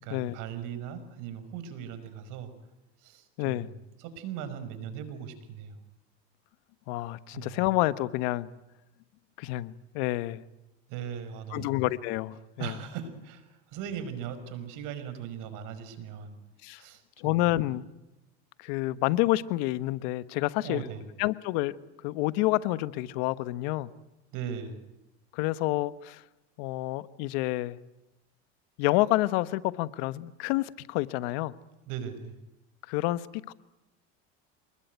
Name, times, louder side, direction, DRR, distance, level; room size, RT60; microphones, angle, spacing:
voice 1, 0.0-2.5 3.0-5.8 7.3-7.6 10.9-11.7 12.6-16.4 16.7-17.4 20.6-21.0 24.3-24.8 31.9-32.4, right 8 dB, 65° right, 5.6 m, -39 dB
voice 2, 3.4-3.7 6.9-8.5 9.4-10.4 11.5-12.7 16.6-16.8 17.2-17.9 18.6-20.8 21.2-21.8 22.0-23.9 25.3-26.2 26.6-27.8 28.8-31.5 32.9-33.5, left 17 dB, 75° left, 1.3 m, -28 dB
27.5 x 20.5 x 9.4 m
supercardioid pair, 95°, 33 cm